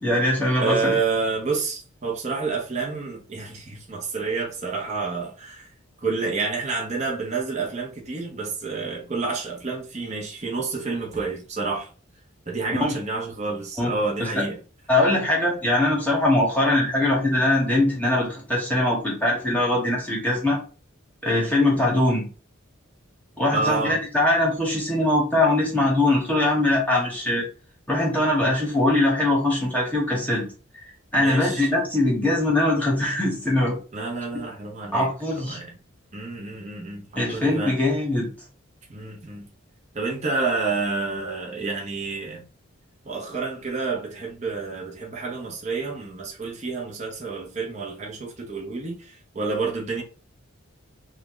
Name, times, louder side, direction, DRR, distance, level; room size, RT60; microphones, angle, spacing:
voice 1, 0.0-0.9 12.8-13.0 13.8-13.9 14.3-14.4 14.9-20.6 21.2-22.2 23.4-27.4 27.9-30.4 31.1-33.8 34.9-35.6 37.1-38.3, left 1 dB, 5° left, 1.3 m, -22 dB
voice 2, 0.6-5.7 6.0-11.9 12.5-14.6 23.5-24.0 31.2-31.7 33.9-35.1 35.4-35.7 36.1-37.8 38.9-39.5 39.9-42.4 43.0-50.0, right 4 dB, 35° right, 1.0 m, -29 dB
3.7 x 2.4 x 3.8 m
head